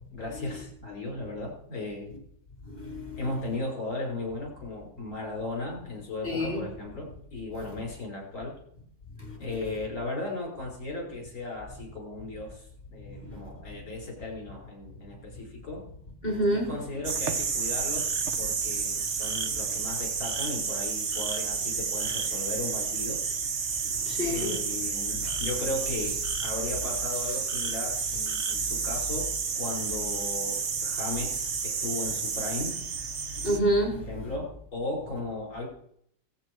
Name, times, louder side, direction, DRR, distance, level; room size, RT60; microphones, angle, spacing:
voice 1, 0.1-2.1 3.2-8.5 9.4-15.8 16.7-23.2 24.2-29.3 29.5-32.7 34.1-35.7, left 2 dB, 55° left, 6.1 m, -36 dB
voice 2, 2.7-3.2 6.2-6.6 9.2-9.3 13.2-13.4 16.2-16.7 24.1-24.5 25.2-25.3 33.4-34.1, equal, 30° left, 4.5 m, -28 dB
sound 1, 17.0-33.6, right 5 dB, 45° right, 1.3 m, -30 dB
23.5 x 8.3 x 4.8 m
omnidirectional pair, 1.9 m